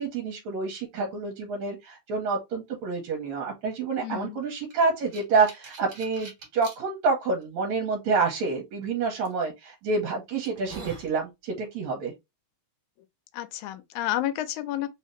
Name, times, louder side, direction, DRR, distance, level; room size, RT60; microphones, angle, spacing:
voice 1, 0.0-12.1, right 4 dB, 70° right, 2.1 m, -28 dB
voice 2, 4.0-4.4 13.3-14.9, left 13 dB, 80° left, 1.9 m, -30 dB
sound 1, 4.7-6.8 7.4-7.5 9.2-9.4 10.0-10.1 10.4-11.1, right 4 dB, 50° right, 1.8 m, -43 dB
4.6 x 2.8 x 3.1 m
omnidirectional pair, 3.4 m